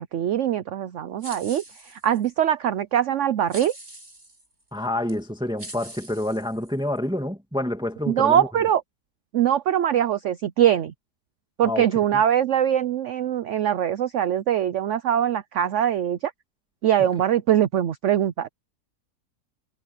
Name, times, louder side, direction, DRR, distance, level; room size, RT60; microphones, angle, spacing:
voice 1, 0.0-3.7 8.1-8.8 9.3-10.9 11.6-16.3 16.8-18.5, right 10 dB, 60° right, 0.8 m, -22 dB
sound 1, 1.2-2.3 3.5-4.5 5.1-5.2 5.6-7.0, right 1 dB, 40° right, 7.7 m, -43 dB
voice 2, 4.7-8.5 11.6-11.9 12.1-12.2, left 1 dB, 5° right, 2.1 m, -28 dB
omnidirectional pair, 1.7 m